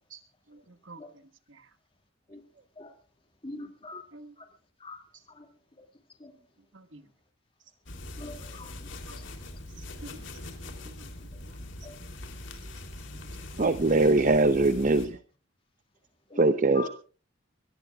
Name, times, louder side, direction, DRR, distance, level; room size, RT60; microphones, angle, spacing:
voice 1, 0.5-1.2 1.5-1.7 4.1-4.3 6.7-7.0 9.1-9.2 10.0-10.5 10.8-11.1 11.5-11.6, right 2 dB, 75° right, 9 dB, 1.4 m, -49 dB
voice 2, 3.4-4.0 4.4-4.5 4.8-5.0 5.3-5.5 6.2-6.3 8.2-8.7 11.8-12.0 16.3-16.4 16.7-16.9, left 3 dB, 30° left, 3 dB, 2.3 m, -42 dB
sound 1, 7.9-15.1, left 1 dB, 75° left, 3.2 m, -42 dB
voice 3, 13.6-15.2 16.4-16.9, right 2 dB, 40° right, 10 dB, 0.7 m, -22 dB
24.5 x 18.5 x 2.4 m, 0.38 s
head